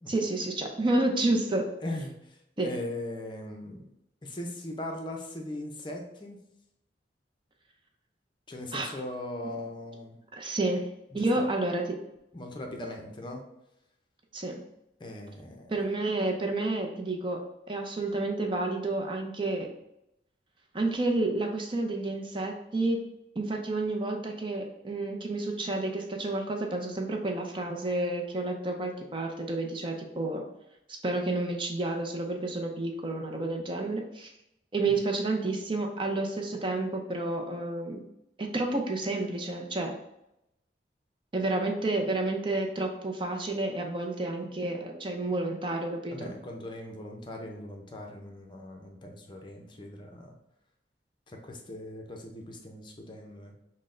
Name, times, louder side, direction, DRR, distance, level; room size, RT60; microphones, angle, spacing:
voice 1, 0.1-1.7 2.6-2.7 8.7-8.9 10.3-10.9 11.1-12.0 14.3-14.5 15.7-17.4 17.7-19.7 20.7-23.0 23.4-30.4 31.0-34.3 34.7-38.0 38.4-40.0 41.3-46.3, right 2 dB, 30° right, 2 dB, 0.6 m, -30 dB
voice 2, 1.8-3.9 4.2-6.4 8.5-10.2 11.1-11.5 12.3-13.4 15.0-15.8 34.9-35.0 46.1-50.3 51.3-53.6, left 1 dB, 25° left, 2 dB, 0.6 m, -40 dB
6.0 x 2.1 x 3.7 m, 0.85 s
head